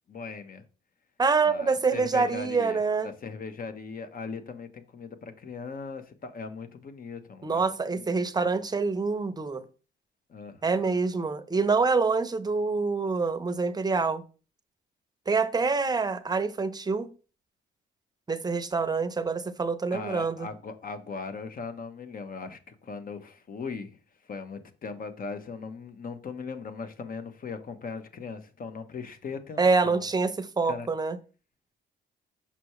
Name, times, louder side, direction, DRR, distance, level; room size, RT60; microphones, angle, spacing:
voice 1, 0.1-0.6 1.4-8.5 10.3-11.0 19.9-24.0 24.3-30.1 30.7-30.9, left 5 dB, 45° left, 1.0 m, -39 dB
voice 2, 1.2-3.1 7.4-9.6 10.6-14.2 15.3-17.1 18.3-20.5 29.6-31.2, right 4 dB, 20° right, 0.7 m, -26 dB
6.0 x 5.7 x 3.1 m
cardioid pair, 90°, 20 cm